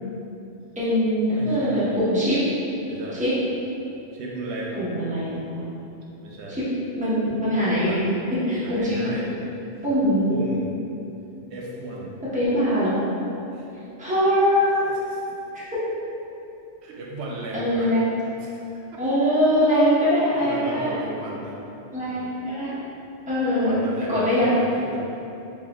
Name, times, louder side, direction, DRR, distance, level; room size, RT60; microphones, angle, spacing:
voice 1, 0.8-2.4 3.2-3.3 4.7-5.6 7.0-8.0 8.5-9.1 9.8-10.2 12.3-13.0 14.0-14.9 15.5-15.6 17.5-18.0 19.0-20.9 21.9-22.7 23.3-23.8 24.1-24.5, equal, 10° right, -11 dB, 0.8 m, -22 dB
voice 2, 1.3-2.0 2.8-3.3 4.1-4.9 5.1-5.5 6.2-6.7 7.7-8.3 8.6-9.6 10.3-10.8 11.5-12.2 13.5-13.7 14.7-15.4 16.8-17.9 18.4-19.0 20.4-21.6 22.0-22.3 23.4-25.2, right 1 dB, 85° right, -3 dB, 0.9 m, -35 dB
5.7 x 2.3 x 2.3 m, 2.8 s
omnidirectional pair, 1.1 m